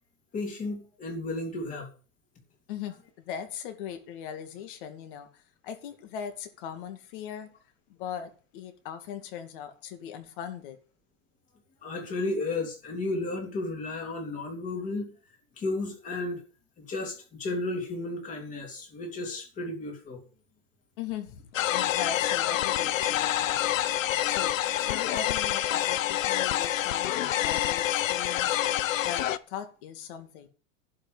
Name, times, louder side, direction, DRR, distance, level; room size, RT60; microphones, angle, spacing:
voice 1, 0.3-1.9 11.8-15.1 15.6-16.4 16.8-20.2, left 2 dB, 20° left, 3.3 m, -33 dB
voice 2, 2.7-7.5 7.9-10.8 21.0-23.9 24.2-28.6 29.0-30.5, left 8 dB, 40° left, 2.4 m, -39 dB
sound 1, 21.5-29.4, left 12 dB, 75° left, 1.0 m, -27 dB
11.5 x 6.2 x 9.0 m
supercardioid pair, 165°, 39 cm